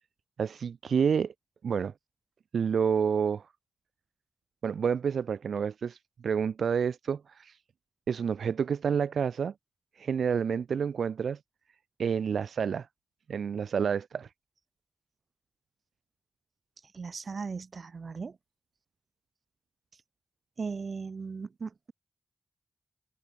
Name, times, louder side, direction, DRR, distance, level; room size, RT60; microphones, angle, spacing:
voice 1, 0.4-1.3 1.6-1.9 2.5-3.5 4.6-6.0 6.2-7.6 8.1-9.5 10.0-11.4 12.0-12.9 13.3-14.3, right 7 dB, 90° right, 0.5 m, -29 dB
voice 2, 16.9-18.4 20.6-21.9, right 5 dB, 65° right, 1.2 m, -37 dB
cardioid pair, 55°, 0 cm